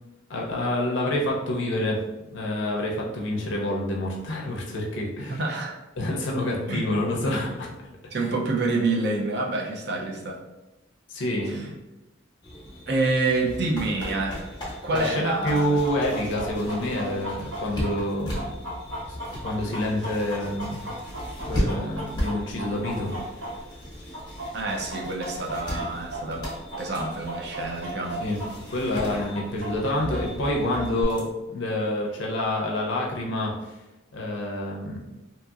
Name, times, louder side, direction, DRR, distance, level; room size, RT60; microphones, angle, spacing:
voice 1, 0.3-2.0 2.3-5.4 6.0-7.7 11.1-11.8 14.9-18.5 19.1-19.2 19.4-20.9 21.4-23.5 28.2-28.4 28.7-33.7 34.1-35.0, left 1 dB, 65° left, -1 dB, 0.5 m, -27 dB
voice 2, 5.3-5.8 6.7-6.8 8.1-10.4 11.5-11.7 12.9-14.5 14.8-15.8 24.5-26.5 26.8-28.2, right 3 dB, 55° right, 0 dB, 0.5 m, -27 dB
sound 1, 12.4-31.2, equal, 20° left, 0.8 m, -36 dB
Chicken rooster, 15.5-23.8 24.1-28.5 28.7-28.8 29.3-31.0, right 1 dB, 70° right, 1.0 m, -35 dB
2.8 x 2.7 x 2.3 m, 1.0 s
head